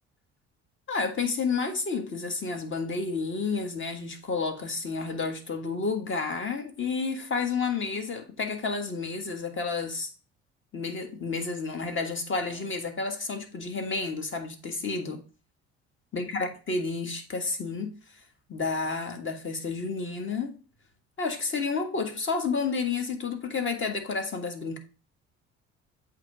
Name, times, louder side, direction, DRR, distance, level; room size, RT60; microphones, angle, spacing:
voice 1, 0.9-10.1 10.7-15.2 16.1-17.9 18.5-20.6 21.2-24.8, left 4 dB, 40° left, 1.6 m, -30 dB
8.1 x 3.1 x 4.9 m
supercardioid pair, 75°, 31 cm